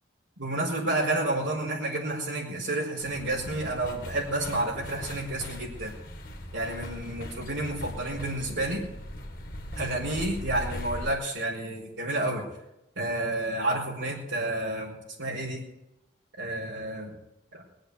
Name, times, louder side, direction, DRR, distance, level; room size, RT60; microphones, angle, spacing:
voice 1, 0.4-5.9 6.5-8.9 9.8-12.4 13.0-15.6 16.4-17.1 17.5-17.6, right 2 dB, 85° right, -7 dB, 5.0 m, -30 dB
sound 1, 3.0-11.1, equal, 50° left, 2.0 m, -40 dB
21.0 x 7.8 x 8.3 m, 0.89 s
head